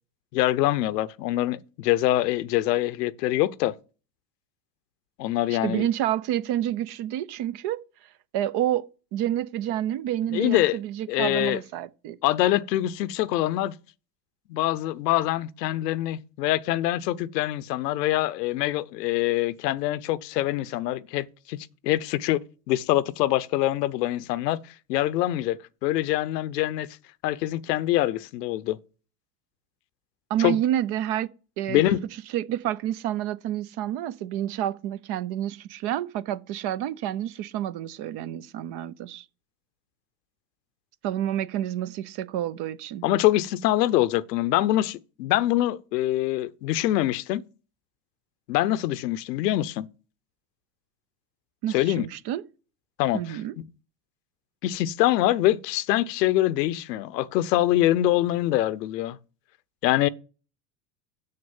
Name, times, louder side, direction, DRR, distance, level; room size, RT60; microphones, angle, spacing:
voice 1, 0.3-3.7 5.2-5.8 10.3-10.8 11.1-11.6 12.2-13.7 14.5-21.6 21.8-24.6 24.9-26.9 27.2-28.8 30.4-30.6 31.7-32.1 43.0-47.4 48.5-49.9 51.7-52.0 53.0-53.4 54.6-59.2 59.8-60.1, left 15 dB, 75° left, 0.8 m, -24 dB
voice 2, 5.5-7.8 8.3-12.2 30.3-31.3 31.6-31.8 32.3-39.2 41.0-43.0 51.6-52.4 53.1-53.5, right 12 dB, 55° right, 0.8 m, -29 dB
6.7 x 6.6 x 7.1 m
hypercardioid pair, 80°, 49 cm